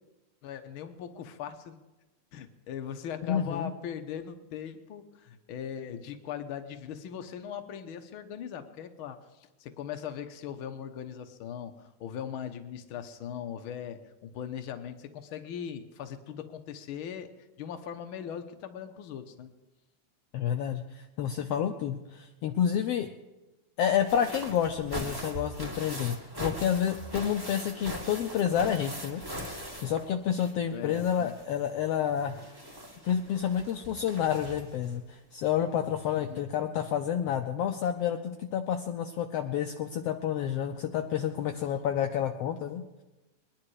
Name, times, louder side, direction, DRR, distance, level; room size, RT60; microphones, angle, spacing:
voice 1, 0.4-1.8 2.3-17.3 17.6-19.5 30.7-31.3 36.2-36.4, left 8 dB, 70° left, 8 dB, 1.2 m, -40 dB
voice 2, 3.2-3.7 20.3-23.1 23.8-32.4 33.0-43.0, left 9 dB, 90° left, 6 dB, 1.3 m, -29 dB
sound 1, 23.9-30.6 30.9-34.9 35.9-36.0 36.4-36.5, equal, 10° right, 1.3 m, -41 dB
22.0 x 10.5 x 4.8 m, 1.1 s
omnidirectional pair, 3.6 m